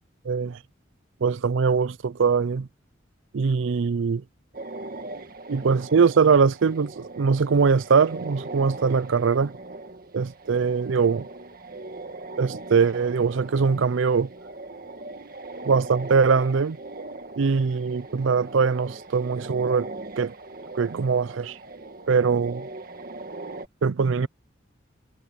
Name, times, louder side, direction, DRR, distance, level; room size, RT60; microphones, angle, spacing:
voice 1, 0.3-0.6 1.2-2.7 3.3-4.2 5.5-9.5 10.1-11.3 12.4-14.3 15.6-16.8 17.4-19.9 20.2-20.3 20.8-21.6 22.1-22.7 23.8-24.3, right 5 dB, 75° right, 0.5 m, -22 dB
sound 1, 4.5-23.7, right 2 dB, 45° right, 1.7 m, -40 dB
head